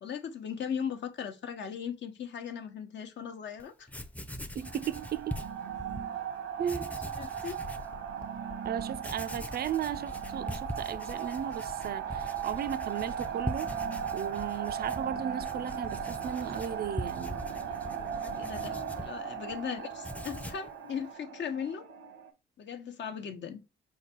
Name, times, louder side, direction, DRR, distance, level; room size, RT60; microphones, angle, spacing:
voice 1, 0.0-3.9 7.2-7.6 18.1-21.8 22.6-23.6, left 7 dB, 65° left, 0.9 m, -38 dB
Writing, 3.6-3.7 3.9-6.1 6.6-7.9 8.4-8.5 9.0-19.6 19.9-20.7, equal, 5° left, 0.6 m, -42 dB
voice 2, 4.5-5.4 6.6-6.9 8.6-13.7 14.1-17.4, right 9 dB, 50° right, 0.4 m, -36 dB
sound 1, 4.6-22.3, right 8 dB, 90° right, 1.1 m, -37 dB
sound 2, 7.6-20.4 21.0-21.1, left 4 dB, 40° left, 0.9 m, -48 dB
4.8 x 2.3 x 4.3 m
cardioid pair, 70°, 20 cm